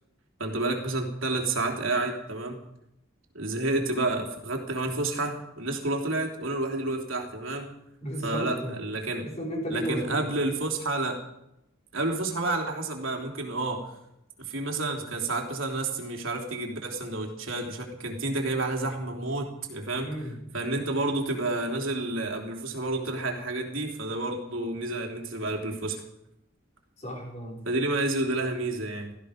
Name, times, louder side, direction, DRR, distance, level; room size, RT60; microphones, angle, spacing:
voice 1, 0.4-2.6 3.3-7.7 8.2-9.2 9.7-11.2 11.9-13.9 14.4-20.1 20.5-26.0 27.6-29.2, right 2 dB, 70° right, 2 dB, 3.4 m, -30 dB
voice 2, 8.0-8.8 9.2-10.0 19.9-20.4 27.0-27.6, equal, 35° left, -2 dB, 5.7 m, -33 dB
17.5 x 15.0 x 5.2 m, 0.85 s
head